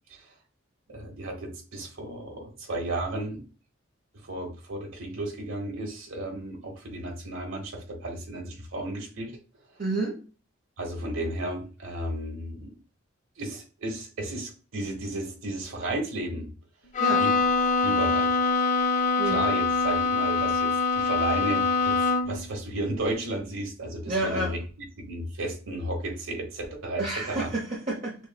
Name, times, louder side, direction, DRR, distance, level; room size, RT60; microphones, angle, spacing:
voice 1, 0.9-3.4 4.2-9.4 10.8-12.7 13.4-16.5 17.1-17.3 17.8-19.0 19.2-24.6 25.0-27.5, right 1 dB, 80° right, 2 dB, 1.3 m, -33 dB
voice 2, 9.8-10.2 17.0-17.3 19.2-19.4 24.1-24.5 27.0-28.2, right 2 dB, 40° right, -3 dB, 0.8 m, -29 dB
Bowed string instrument, 16.9-22.5, left 4 dB, 35° left, 0.3 m, -24 dB
6.2 x 2.2 x 2.2 m, 0.36 s
head